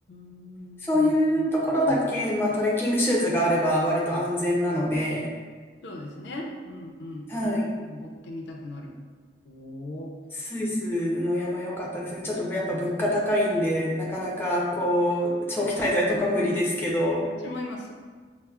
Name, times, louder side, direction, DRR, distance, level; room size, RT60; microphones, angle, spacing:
voice 1, 0.1-1.5 1.9-2.0 5.8-8.9 9.4-10.1 17.4-17.9, left 1 dB, 80° left, 0 dB, 0.5 m, -39 dB
voice 2, 0.9-5.3 7.3-7.7 10.4-17.3, equal, 15° left, -4 dB, 0.5 m, -25 dB
5.4 x 2.0 x 2.3 m, 1.5 s
head